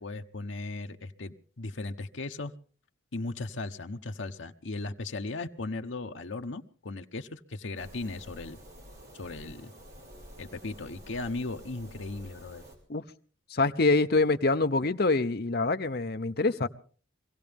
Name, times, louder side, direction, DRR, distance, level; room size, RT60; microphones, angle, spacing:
voice 1, 0.0-2.5 3.1-8.6 9.1-9.7 10.4-12.6, left 3 dB, 75° left, 6 dB, 0.9 m, -37 dB
sound 1, 7.8-12.8, equal, 60° right, 4.8 m, -49 dB
voice 2, 13.5-16.7, left 3 dB, 50° left, 8 dB, 0.8 m, -25 dB
24.5 x 16.5 x 3.5 m, 0.42 s
head